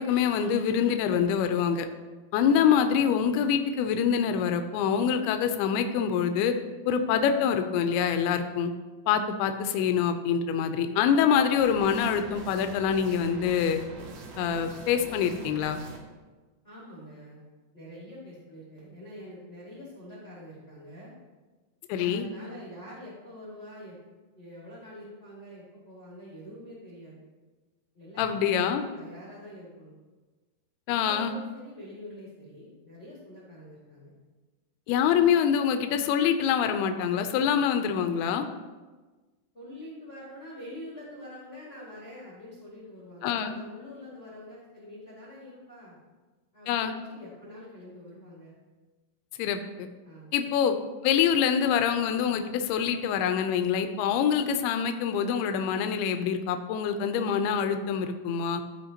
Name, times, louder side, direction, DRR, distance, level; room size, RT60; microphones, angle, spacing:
voice 1, 0.0-1.9 2.3-6.6 6.9-8.7 9.1-13.8 14.4-15.8 21.9-22.3 28.2-28.8 30.9-31.4 34.9-38.5 43.2-43.6 46.7-46.9 49.4-49.9 50.3-50.7 51.0-58.6, left 7 dB, 85° left, 7 dB, 2.5 m, -25 dB
sound 1, 11.6-16.0, right 2 dB, 90° right, 1.4 m, -44 dB
voice 2, 16.6-17.4 17.7-21.1 22.0-24.0 24.3-27.2 27.9-29.9 30.9-34.1 39.5-46.0 46.5-48.5 50.0-50.4, left 1 dB, 30° left, -8 dB, 1.1 m, -45 dB
14.5 x 5.0 x 2.9 m, 1.3 s
omnidirectional pair, 4.6 m